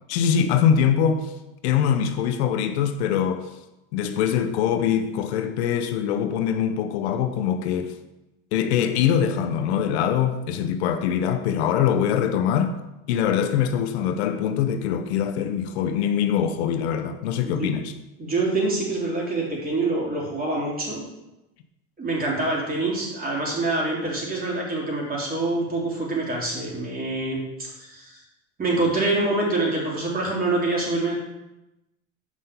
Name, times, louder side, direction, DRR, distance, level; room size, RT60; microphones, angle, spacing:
voice 1, 0.1-1.3 1.6-3.5 3.9-7.9 8.5-12.7 13.1-17.9, left 8 dB, 85° left, 0.8 m, -23 dB
voice 2, 17.4-17.8 18.2-21.0 22.0-28.2 28.6-31.1, right 2 dB, 25° right, 3.6 m, -26 dB
6.3 x 5.6 x 6.8 m
supercardioid pair, 100°, 32 cm